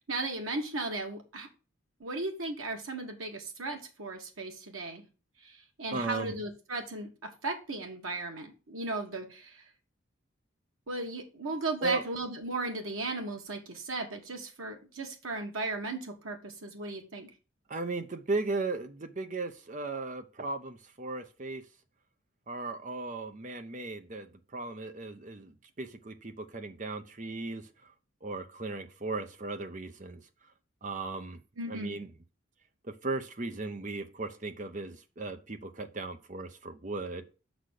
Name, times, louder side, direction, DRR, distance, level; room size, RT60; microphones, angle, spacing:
voice 1, 0.0-1.5 2.0-5.0 5.4-9.6 10.9-17.3 31.6-32.0, right 2 dB, 90° right, 1.6 m, -36 dB
voice 2, 5.9-6.3 11.8-12.0 17.7-21.6 22.5-27.9 28.2-30.2 30.8-31.4 31.7-32.1 32.8-37.2, right 3 dB, 40° right, 0.7 m, -36 dB
6.3 x 4.1 x 6.4 m
head